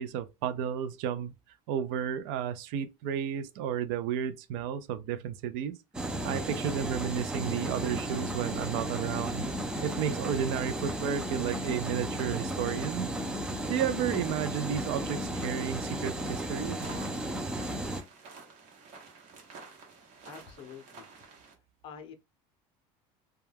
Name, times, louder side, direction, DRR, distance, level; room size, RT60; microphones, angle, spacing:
voice 1, 0.0-1.3 1.7-5.8 6.2-9.4 9.8-13.1 13.7-16.8, right 9 dB, 80° right, 0.4 m, -32 dB
sound 1, 5.9-18.0, right 1 dB, 5° right, 0.3 m, -34 dB
sound 2, 15.3-21.5, right 4 dB, 55° right, 0.9 m, -51 dB
voice 2, 20.2-21.1 21.8-22.1, left 7 dB, 45° left, 0.5 m, -46 dB
2.2 x 2.2 x 3.2 m
cardioid pair, 150°, 13 cm